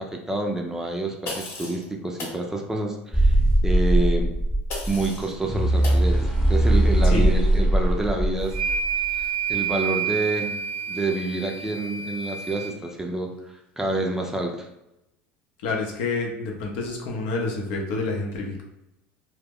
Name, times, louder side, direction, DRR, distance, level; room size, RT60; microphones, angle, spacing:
voice 1, 0.0-3.4 3.6-4.3 4.9-8.5 9.2-10.6 10.9-13.3 13.8-14.7, right 2 dB, 10° right, 1 dB, 0.4 m, -28 dB
sound 1, 1.2-1.8 2.2-2.4 4.7-5.3 5.8-6.0, left 2 dB, 45° left, 1.0 m, -35 dB
sound 2, 3.1-9.2, right 1 dB, 15° left, 0.8 m, -20 dB
sound 3, 8.5-12.7, right 7 dB, 85° right, 0.6 m, -29 dB
voice 2, 15.6-18.6, left 3 dB, 75° left, 0 dB, 0.6 m, -28 dB
2.1 x 2.0 x 3.5 m, 0.89 s
supercardioid pair, 95°, 5 cm